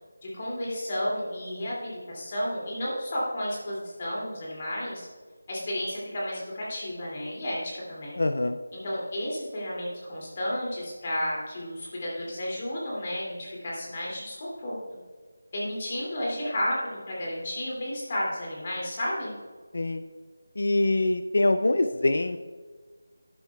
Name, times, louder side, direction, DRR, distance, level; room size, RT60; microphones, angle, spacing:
voice 1, 0.2-5.1 5.5-7.6 7.9-8.2 8.7-14.8 15.5-19.3, left 1 dB, 25° left, -4 dB, 2.5 m, -32 dB
voice 2, 8.2-8.6 19.7-20.0 20.6-22.4, left 2 dB, 55° left, 9 dB, 0.5 m, -24 dB
12.0 x 10.0 x 2.3 m, 1.5 s
figure-of-eight pair, 175°, 0 cm